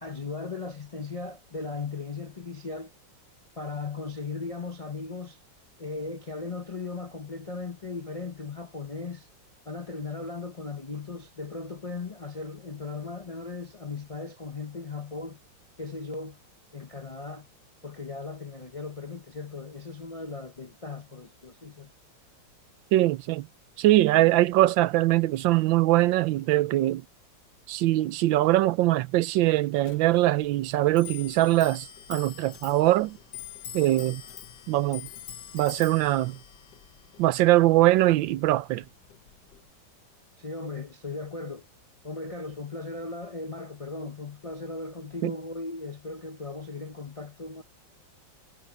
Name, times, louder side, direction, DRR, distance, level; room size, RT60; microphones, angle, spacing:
voice 1, 0.0-2.9 3.6-5.4 5.8-9.3 9.7-15.4 15.8-16.4 16.7-17.5 17.8-21.9 40.4-41.7 42.0-47.6, left 3 dB, 45° left, 0.4 m, -37 dB
voice 2, 22.9-23.5 23.8-27.0 27.7-33.2 33.7-34.2 34.7-35.1 35.5-36.4 37.2-38.8 45.2-45.3, right 16 dB, 80° right, 1.3 m, -22 dB
Clock, 29.8-39.7, left 9 dB, 65° left, 1.5 m, -45 dB
omnidirectional pair, 2.1 m